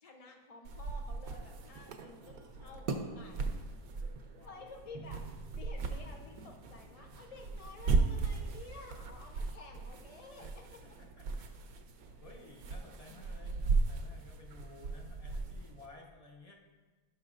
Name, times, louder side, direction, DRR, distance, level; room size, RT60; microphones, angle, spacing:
voice 1, 0.0-3.4 4.5-10.8, left 3 dB, 75° left, 2 dB, 0.3 m, -52 dB
sound 1, 0.6-15.9, right 4 dB, 70° right, 1.1 m, -37 dB
voice 2, 4.1-4.7 10.4-10.5 10.8-11.5 12.2-16.5, left 3 dB, 25° left, 0 dB, 1.0 m, -55 dB
sound 2, 4.9-10.1, right 2 dB, 50° right, 0.4 m, -55 dB
14.5 x 5.8 x 2.5 m, 1.3 s
omnidirectional pair, 1.7 m